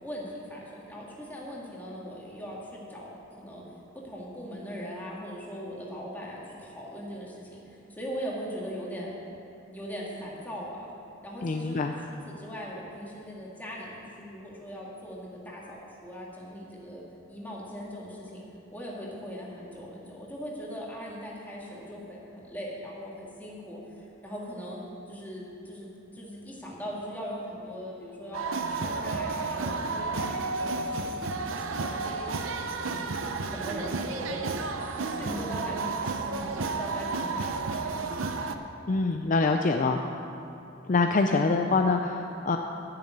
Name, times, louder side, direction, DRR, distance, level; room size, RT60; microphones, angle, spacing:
voice 1, 0.0-3.1 3.4-3.6 3.9-9.1 9.7-10.9 11.2-11.8 12.1-17.0 17.3-18.4 18.7-24.8 25.1-32.5 32.9-34.5 35.0-38.1, equal, 10° left, -5 dB, 2.2 m, -40 dB
voice 2, 11.4-11.9 38.9-40.0 40.9-42.6, left 3 dB, 40° left, 4 dB, 0.5 m, -25 dB
sound 1, 28.3-38.6, right 3 dB, 90° right, 0.7 m, -32 dB
10.5 x 6.9 x 9.4 m, 2.8 s
head